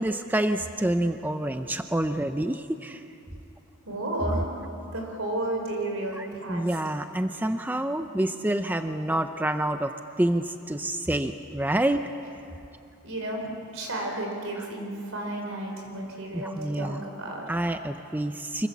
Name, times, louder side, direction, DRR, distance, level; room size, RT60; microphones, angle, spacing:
voice 1, 0.0-3.0 6.2-9.9 10.2-12.1 14.6-14.7 16.3-17.0 17.5-18.7, right 1 dB, 10° right, 8 dB, 0.5 m, -27 dB
voice 2, 3.9-4.5 4.9-6.6 13.0-17.4, right 1 dB, 65° right, 1 dB, 5.3 m, -32 dB
25.0 x 23.5 x 7.3 m, 2.7 s
head